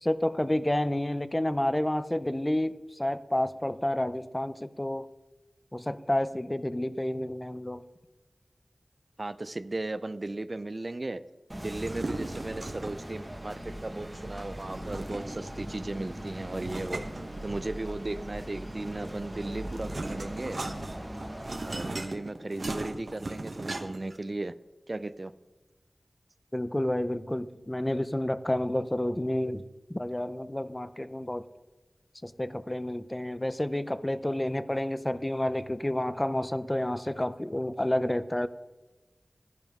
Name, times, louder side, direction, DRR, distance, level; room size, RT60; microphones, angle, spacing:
voice 1, 0.0-5.1 5.7-7.8 26.5-29.6 29.9-31.4 32.2-38.5, left 1 dB, 20° left, 13 dB, 0.5 m, -30 dB
voice 2, 9.2-11.2 11.6-17.0 17.4-20.6 21.6-24.5 24.9-25.3, right 2 dB, 45° right, 14 dB, 0.4 m, -36 dB
sound 1, 11.5-22.0, right 1 dB, 20° right, 1.2 m, -40 dB
sound 2, 11.8-13.1 14.5-15.5 16.5-17.9 19.1-24.2, right 2 dB, 65° right, 1.1 m, -38 dB
12.0 x 10.5 x 3.6 m, 1.1 s
wide cardioid pair, 70°, 0 cm